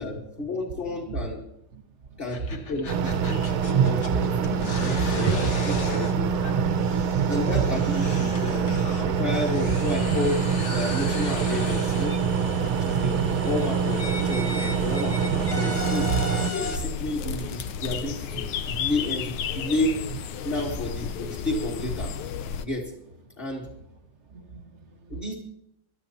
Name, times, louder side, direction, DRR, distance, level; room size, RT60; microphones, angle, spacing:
voice 1, 0.0-1.4 2.2-4.3 4.7-6.3 7.3-8.7 9.0-10.4 10.7-12.2 12.6-16.1 16.5-20.0 20.4-22.1 22.6-22.9 23.4-23.7 25.1-25.3, left 2 dB, 30° left, -4 dB, 1.7 m, -31 dB
sound 1, 2.2-16.8, left 4 dB, 45° left, 1.1 m, -37 dB
sound 2, 2.9-16.5, right 6 dB, 80° right, 1.6 m, -25 dB
voice 2, 3.3-4.2 4.6-5.5 6.5-6.6 6.9-7.6 16.1-16.2 24.3-25.2, right 7 dB, 40° right, 7 dB, 1.1 m, -29 dB
sound 3, 15.7-22.7, left 8 dB, 85° left, 1.6 m, -33 dB
21.5 x 11.5 x 2.9 m, 0.78 s
omnidirectional pair, 2.3 m